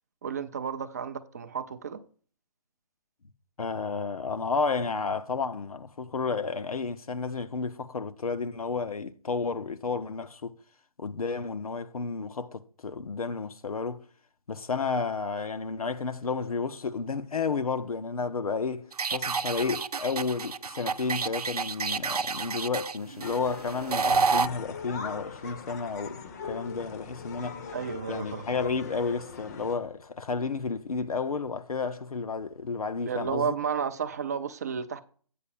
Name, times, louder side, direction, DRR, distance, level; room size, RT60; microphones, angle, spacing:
voice 1, 0.2-2.0 27.7-28.5 33.1-35.0, right 6 dB, 25° right, 0.4 m, -32 dB
voice 2, 3.6-10.5 11.0-14.0 14.5-27.8 28.1-33.6, left 4 dB, 70° left, 0.8 m, -32 dB
sound 1, 18.9-24.5, right 5 dB, 85° right, 0.5 m, -29 dB
sound 2, 23.2-29.8, left 5 dB, 25° left, 0.7 m, -41 dB
8.7 x 4.1 x 7.0 m
figure-of-eight pair, 150°, 19 cm